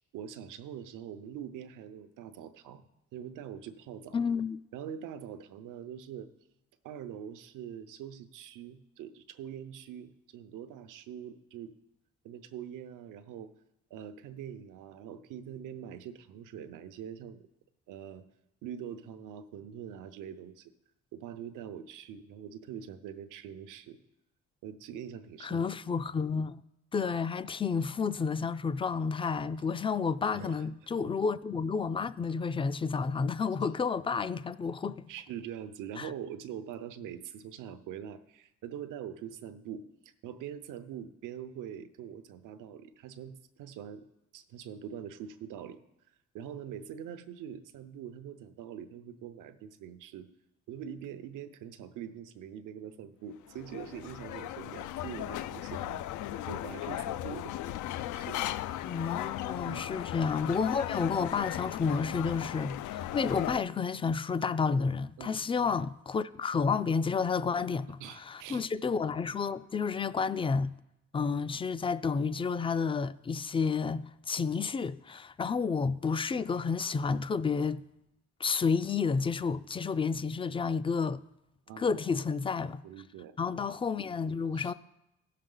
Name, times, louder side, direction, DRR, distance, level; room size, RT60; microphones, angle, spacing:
voice 1, 0.1-2.9 3.1-4.2 4.7-6.3 6.8-11.8 12.2-13.5 13.9-17.4 17.9-18.2 18.6-20.7 21.1-24.0 24.6-25.7 30.3-30.7 31.0-31.2 35.1-44.1 44.3-45.8 46.3-50.3 50.7-56.0 56.4-57.5 58.1-58.4 59.6-59.9 65.2-65.7 67.6-67.7 68.0-68.6 81.7-82.2 82.8-83.3 84.5-84.7, right 9 dB, 90° right, 0.7 m, -44 dB
voice 2, 4.1-4.6 25.4-26.6 26.9-35.1 36.0-36.1 58.8-70.7 71.1-77.8 78.4-81.2 81.8-82.8 83.4-84.7, left 5 dB, 20° left, 0.3 m, -31 dB
sound 1, 53.3-63.6, left 13 dB, 80° left, 0.5 m, -37 dB
16.5 x 6.6 x 3.9 m
cardioid pair, 90°, 30 cm